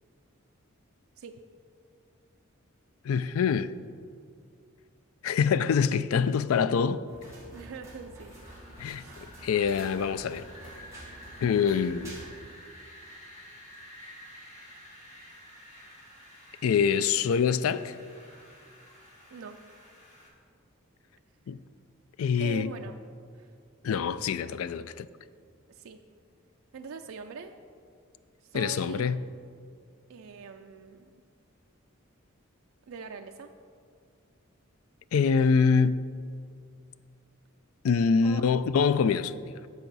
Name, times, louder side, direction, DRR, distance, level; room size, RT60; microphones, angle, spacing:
voice 1, 3.0-3.7 5.2-7.0 8.8-9.1 9.4-10.4 11.4-12.2 16.6-18.0 21.5-21.6 22.2-22.7 23.8-25.1 28.5-29.2 35.1-36.0 37.8-39.7, left 6 dB, 85° left, 0.3 m, -25 dB
sound 1, 7.1-12.3, right 1 dB, 15° right, 2.1 m, -48 dB
voice 2, 7.5-8.3 9.0-9.1 19.3-19.6 22.2-23.0 23.3-23.5 25.7-26.0 26.7-27.5 28.4-29.1 30.1-31.2 32.9-33.5 38.2-38.4, right 5 dB, 80° right, 0.4 m, -42 dB
Wind, 8.3-20.3, equal, 35° left, 2.0 m, -51 dB
10.5 x 7.0 x 4.0 m
head